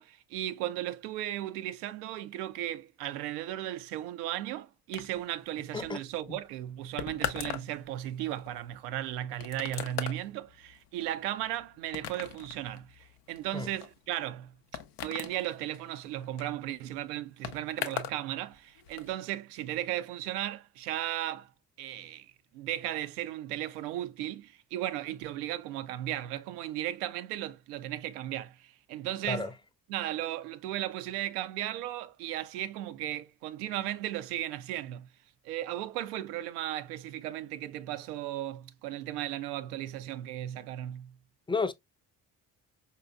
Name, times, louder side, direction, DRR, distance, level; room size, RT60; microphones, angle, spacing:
voice 1, 0.0-14.5 15.0-21.5 21.8-29.5 29.9-35.1 35.4-41.2, right 13 dB, 85° right, 0.5 m, -36 dB
sound 1, 4.9-18.2 18.5-19.1, left 10 dB, 90° left, 0.6 m, -41 dB
voice 2, 5.7-6.0 6.3-6.4 13.5-13.7 29.3-29.5 41.5-41.7, left 4 dB, 10° left, 0.5 m, -31 dB
4.7 x 2.8 x 2.3 m
hypercardioid pair, 45°, 45 cm